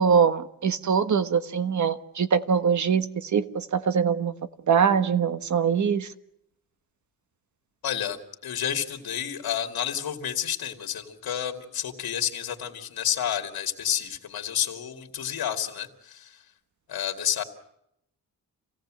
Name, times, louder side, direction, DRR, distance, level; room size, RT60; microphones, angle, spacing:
voice 1, 0.0-4.3 4.7-6.1, right 6 dB, 55° right, 1.4 m, -23 dB
voice 2, 7.8-16.4 16.9-17.4, left 9 dB, 85° left, 2.5 m, -30 dB
27.5 x 17.5 x 7.6 m
wide cardioid pair, 135°, 36 cm